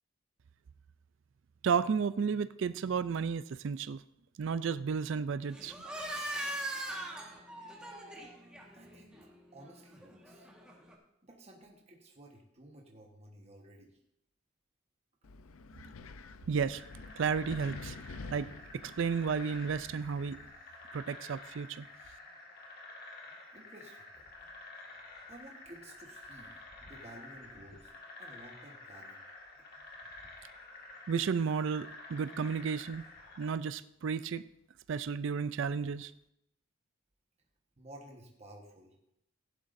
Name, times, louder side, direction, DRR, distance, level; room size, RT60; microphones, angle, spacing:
voice 1, 1.6-4.0 4.4-5.7 16.5-16.8 17.2-17.9 18.3-18.5 18.8-20.4 20.9-21.8 31.1-33.0 33.4-34.4 34.9-36.1, right 6 dB, 60° right, 14 dB, 0.4 m, -32 dB
sound 1, 5.5-10.9, right 1 dB, 5° right, 1.5 m, -42 dB
voice 2, 8.7-10.5 11.2-14.0 23.5-24.3 25.3-27.9 28.2-29.2 37.8-39.0, right 1 dB, 30° right, 0 dB, 1.2 m, -54 dB
Wind, 15.2-20.5, left 3 dB, 80° left, 0.6 m, -48 dB
sound 2, 16.7-33.5, left 2 dB, 45° left, 1.8 m, -50 dB
15.5 x 11.0 x 2.6 m, 0.81 s
head